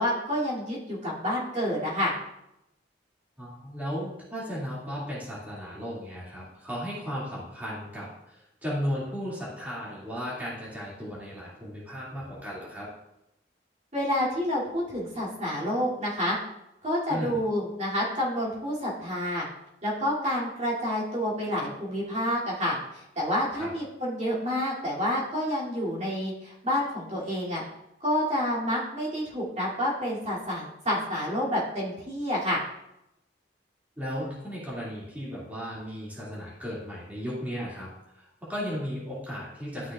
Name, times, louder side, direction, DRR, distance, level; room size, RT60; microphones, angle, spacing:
voice 1, 0.0-2.1 13.9-16.4 16.8-19.5 19.8-27.6 28.0-32.6, equal, 40° right, -6 dB, 2.7 m, -29 dB
voice 2, 3.4-12.9 17.1-17.4 23.6-23.7 34.0-39.9, equal, 10° right, -8 dB, 2.3 m, -35 dB
12.5 x 6.0 x 2.4 m, 0.86 s
head